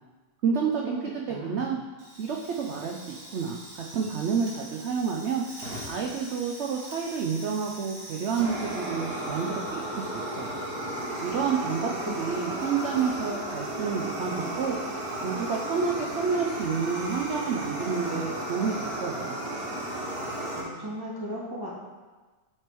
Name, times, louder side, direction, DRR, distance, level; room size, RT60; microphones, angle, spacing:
voice 1, 0.4-1.0 1.3-1.8 2.2-5.4 5.8-10.6 11.2-14.8 15.2-19.4, right 6 dB, 80° right, 0 dB, 0.6 m, -29 dB
voice 2, 1.3-1.7 12.0-12.1 20.5-21.8, equal, 15° right, -5 dB, 1.1 m, -37 dB
Fire, 2.0-20.6, right 1 dB, 60° right, 1.7 m, -35 dB
7.4 x 3.4 x 4.4 m, 1.3 s
omnidirectional pair, 1.8 m